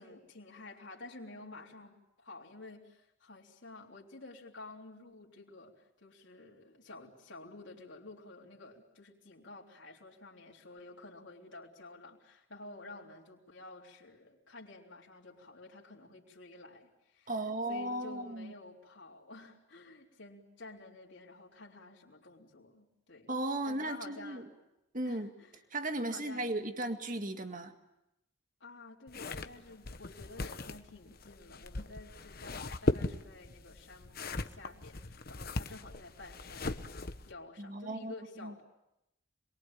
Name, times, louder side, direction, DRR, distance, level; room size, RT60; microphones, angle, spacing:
voice 1, 0.0-23.3 23.7-24.5 25.0-25.6 26.0-26.8 28.6-38.6, left 2 dB, 60° left, -3 dB, 3.6 m, -51 dB
voice 2, 17.3-18.5 23.3-24.5 24.9-25.3 25.7-27.7 37.6-38.1 38.4-38.5, right 1 dB, 40° right, 6 dB, 2.0 m, -36 dB
sound 1, 29.1-37.3, left 2 dB, 45° left, 1.1 m, -38 dB
27.5 x 22.5 x 9.0 m, 0.87 s
head